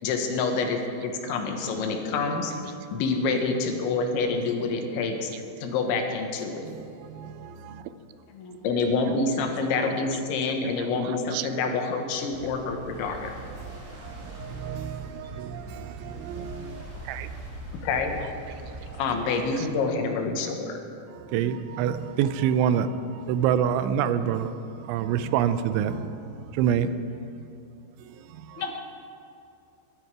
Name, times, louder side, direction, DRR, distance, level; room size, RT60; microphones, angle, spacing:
voice 1, 0.0-5.3 5.6-6.7 8.6-13.3 17.8-18.1 19.0-20.8, left 4 dB, 80° left, 4 dB, 3.6 m, -27 dB
voice 2, 7.1-7.8 11.3-11.5 14.0-17.3 21.1-24.5 24.8-26.9 28.5-28.6, right 9 dB, 85° right, 11 dB, 3.0 m, -27 dB
voice 3, 9.7-10.0 18.9-19.5 28.6-28.8, left 4 dB, 60° left, 1 dB, 2.3 m, -38 dB
sound 1, 12.3-19.7, right 1 dB, 25° right, 2.1 m, -41 dB
22.0 x 11.0 x 4.8 m, 2.6 s
omnidirectional pair, 5.3 m